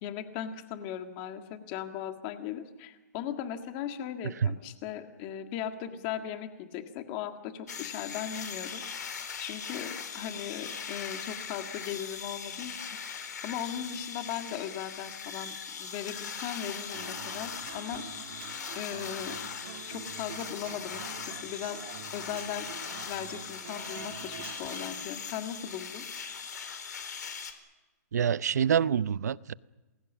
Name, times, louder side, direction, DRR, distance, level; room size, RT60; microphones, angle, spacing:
voice 1, 0.0-8.8 9.4-12.7 13.1-18.1 18.7-19.4 19.9-21.8 22.1-22.7 23.0-26.0, left 9 dB, 25° left, 1.8 m, -38 dB
sound 1, 7.7-27.5, left 6 dB, 80° left, 3.8 m, -40 dB
Human voice / Acoustic guitar, 16.9-24.9, right 10 dB, 45° right, 1.7 m, -47 dB
voice 2, 28.1-29.5, right 8 dB, 70° right, 0.7 m, -26 dB
28.5 x 21.5 x 7.3 m
hypercardioid pair, 170°, 9 cm